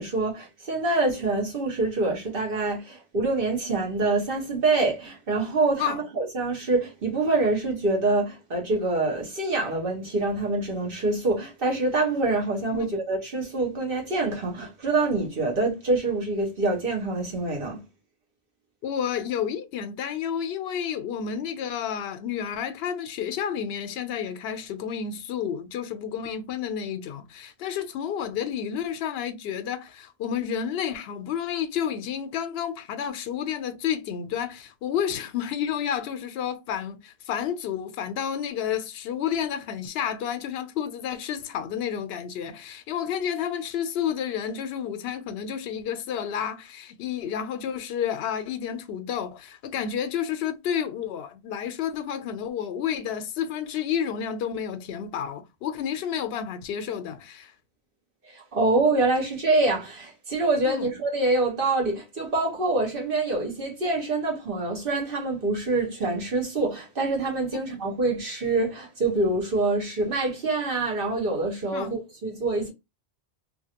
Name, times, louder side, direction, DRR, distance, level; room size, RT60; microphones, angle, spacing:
voice 1, 0.0-17.8 58.3-72.7, right 2 dB, 55° right, 1.3 m, -25 dB
voice 2, 18.8-57.5 60.6-60.9 67.5-67.6 71.7-71.9, left 8 dB, 75° left, 0.8 m, -30 dB
2.9 x 2.5 x 2.8 m
omnidirectional pair, 1.1 m